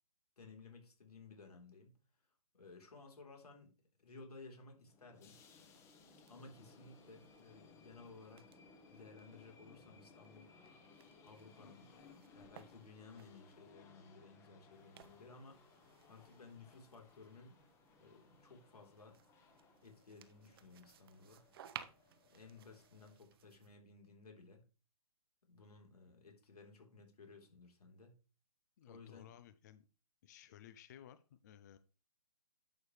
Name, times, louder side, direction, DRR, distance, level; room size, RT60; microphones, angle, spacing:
voice 1, 0.4-1.9 2.5-5.4 6.3-8.5 8.9-10.5 11.2-15.6 16.1-17.6 18.0-19.2 19.8-21.4 22.2-24.6 25.5-28.1 28.9-29.3, left 4 dB, 85° left, 2 dB, 3.6 m, -57 dB
sound 1, 4.8-23.2, left 4 dB, 15° left, 1.0 m, -63 dB
sound 2, 5.6-13.7 14.7-23.8, right 9 dB, 40° right, 0.8 m, -60 dB
voice 2, 28.8-29.9 30.2-31.8, left 10 dB, 30° left, 13 dB, 0.4 m, -58 dB
11.0 x 7.0 x 3.2 m, 0.34 s
hypercardioid pair, 155°, 19 cm